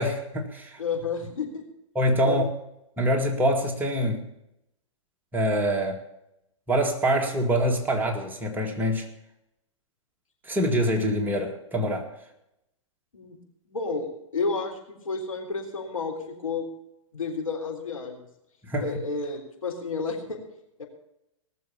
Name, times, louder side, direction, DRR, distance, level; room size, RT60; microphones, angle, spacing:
voice 1, 0.0-0.8 2.0-2.4 3.0-4.3 5.3-6.0 6.7-9.1 10.5-12.1 18.6-18.9, equal, 10° right, 1 dB, 2.0 m, -25 dB
voice 2, 0.8-1.6 2.2-2.4 13.1-13.4 13.7-14.1 14.3-16.7 17.1-18.2 18.8-20.4 20.8-20.9, left 4 dB, 80° left, 1 dB, 3.7 m, -31 dB
19.0 x 7.0 x 7.0 m, 0.83 s
figure-of-eight pair, 110°, 17 cm